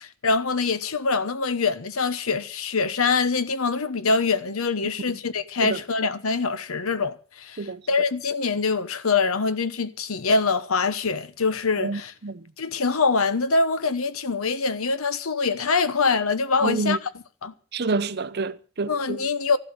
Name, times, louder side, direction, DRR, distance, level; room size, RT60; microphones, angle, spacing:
voice 1, 0.0-12.1 12.6-17.0 17.4-17.5 18.9-19.6, left 4 dB, 85° left, 1.1 m, -24 dB
voice 2, 11.8-12.4 16.6-17.0 17.7-19.2, right 3 dB, 50° right, 0.7 m, -28 dB
13.5 x 12.0 x 6.8 m
head